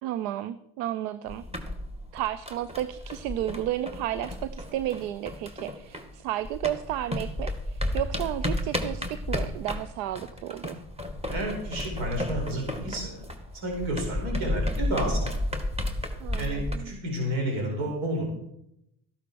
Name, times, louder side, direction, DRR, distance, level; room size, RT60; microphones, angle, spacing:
voice 1, 0.0-1.4 2.1-10.8 16.2-16.9, right 12 dB, 85° right, 15 dB, 0.6 m, -32 dB
sound 1, 1.3-6.2 6.4-16.8, left 1 dB, 10° right, 2.1 m, -32 dB
voice 2, 11.3-13.2 13.5-15.3 16.4-18.2, right 1 dB, 70° right, 0 dB, 4.7 m, -31 dB
14.0 x 11.5 x 4.6 m, 0.79 s
hypercardioid pair, 65°, 48 cm